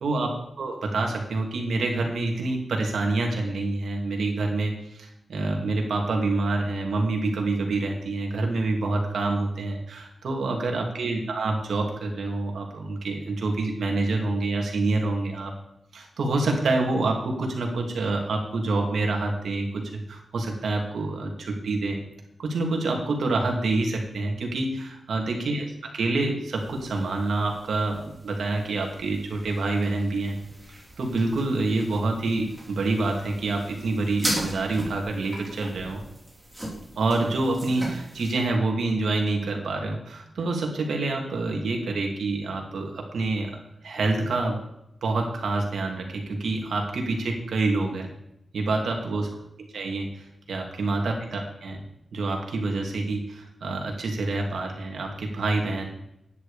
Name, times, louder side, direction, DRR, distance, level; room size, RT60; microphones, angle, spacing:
voice 1, 0.0-15.5 15.9-22.0 22.4-30.4 31.0-36.0 37.0-44.6 45.0-48.1 48.5-51.8 52.1-55.9, right 2 dB, 85° right, 1 dB, 2.8 m, -27 dB
sound 1, 26.6-38.3, right 1 dB, 5° right, 3.5 m, -38 dB
11.0 x 9.8 x 5.2 m, 0.79 s
wide cardioid pair, 165°, 0 cm